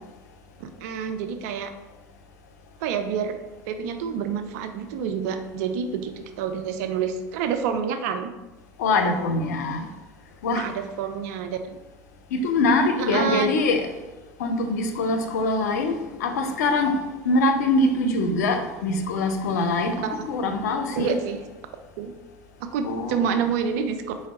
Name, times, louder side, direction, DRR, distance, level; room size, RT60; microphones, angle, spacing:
voice 1, 0.6-1.7 2.8-3.4 3.7-8.3 10.5-11.8 13.0-13.5 20.0-20.3 21.0-21.4 22.0-22.1 22.6-24.0, right 7 dB, 70° right, 0.4 m, -28 dB
voice 2, 8.8-9.9 10.4-10.7 12.3-13.9 14.4-21.2 22.8-23.4, left 2 dB, 80° left, 0.5 m, -23 dB
4.6 x 2.1 x 3.6 m
hypercardioid pair, 75°, 9 cm